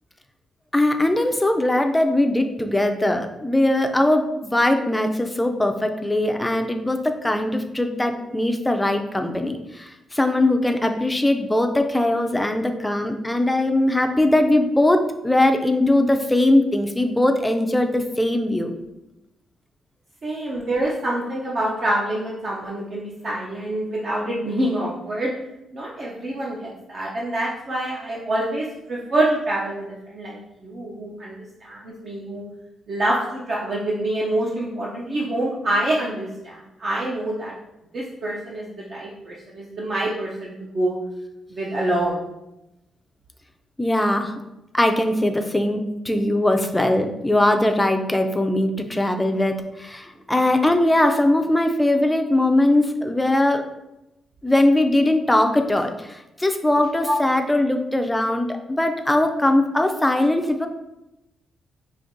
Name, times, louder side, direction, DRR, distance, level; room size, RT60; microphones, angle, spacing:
voice 1, 0.7-18.7 43.8-44.3 44.7-53.6 54.4-60.7, left 1 dB, 10° left, 5 dB, 0.4 m, -20 dB
voice 2, 20.2-25.3 25.7-32.4 32.9-37.5 37.9-41.0 41.5-42.2 57.0-57.2, right 1 dB, 45° right, -4 dB, 0.6 m, -26 dB
5.0 x 2.7 x 2.6 m, 0.93 s
cardioid pair, 115°, 0 cm